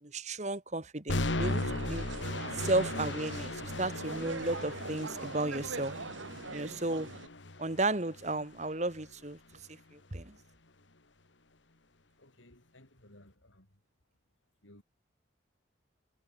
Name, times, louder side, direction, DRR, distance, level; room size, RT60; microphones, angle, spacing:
voice 1, 0.0-2.1 2.5-5.9 6.5-7.1 7.6-9.4 9.9-10.4, right 2 dB, 35° right, 1.7 m, -33 dB
sound 1, 1.1-9.1, left 2 dB, 75° left, 2.3 m, -37 dB
sound 2, 1.4-7.3, right 3 dB, 85° right, 1.7 m, -42 dB
voice 2, 12.2-13.8 14.6-14.8, left 1 dB, 90° left, 7.1 m, -58 dB
head